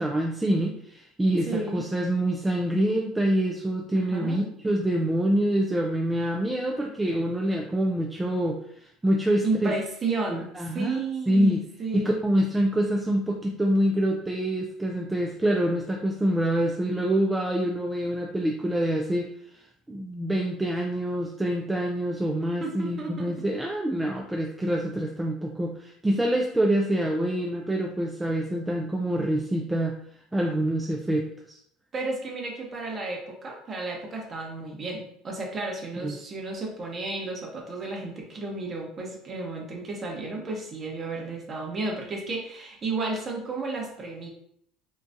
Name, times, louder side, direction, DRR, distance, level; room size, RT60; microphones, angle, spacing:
voice 1, 0.0-9.7 10.3-10.9 11.3-11.6 11.9-30.0 30.3-31.6 36.0-36.2, right 1 dB, 10° right, 0 dB, 0.4 m, -26 dB
voice 2, 1.5-1.8 4.0-4.4 9.4-12.2 22.6-23.4 31.9-44.3, right 3 dB, 35° right, 0 dB, 1.0 m, -32 dB
3.8 x 2.3 x 2.6 m, 0.68 s
hypercardioid pair, 85°, 0 cm